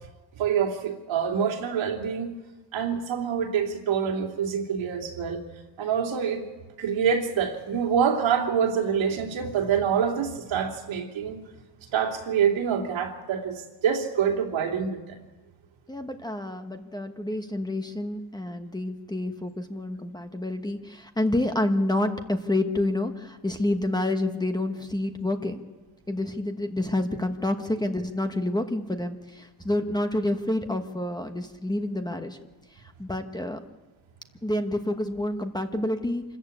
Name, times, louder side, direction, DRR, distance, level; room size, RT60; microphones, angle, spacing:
voice 1, 0.3-2.3 2.7-5.4 5.8-6.5 6.8-11.4 11.9-15.2, right 7 dB, 80° right, 2 dB, 3.0 m, -26 dB
voice 2, 15.9-25.6 26.1-32.4 32.7-33.6 34.4-36.2, left 1 dB, 10° left, 6 dB, 1.1 m, -28 dB
27.0 x 14.0 x 8.6 m, 1.2 s
cardioid pair, 155°, 46 cm